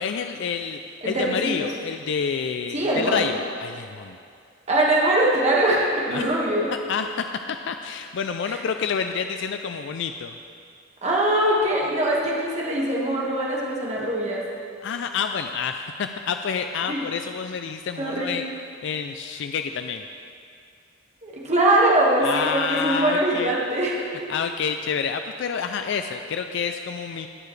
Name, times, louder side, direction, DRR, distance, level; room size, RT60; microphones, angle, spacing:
voice 1, 0.0-4.2 6.1-6.3 6.9-10.3 14.8-18.4 18.8-20.0 22.2-23.6 24.3-27.3, left 6 dB, 65° left, 7 dB, 0.4 m, -28 dB
voice 2, 1.0-1.5 2.7-3.3 4.7-6.7 8.5-8.6 11.0-14.4 16.8-17.0 18.0-18.3 21.2-24.3, right 1 dB, 35° right, -4 dB, 1.7 m, -22 dB
19.5 x 6.9 x 3.3 m, 2.4 s
head